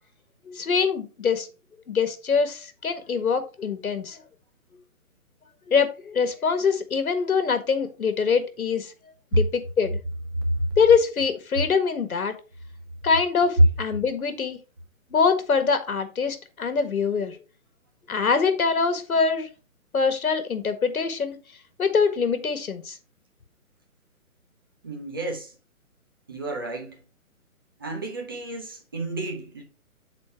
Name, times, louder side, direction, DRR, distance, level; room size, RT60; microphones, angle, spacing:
voice 1, 0.5-1.5 1.9-4.2 5.7-8.9 9.3-10.0 10.8-12.3 13.0-14.6 15.1-17.4 18.1-19.5 19.9-21.4 21.8-23.0, left 5 dB, 75° left, 1.7 m, -24 dB
voice 2, 24.8-25.5 26.3-27.0 27.8-29.6, right 1 dB, 15° right, 0.6 m, -31 dB
7.7 x 4.2 x 4.5 m
hypercardioid pair, 160°, 43 cm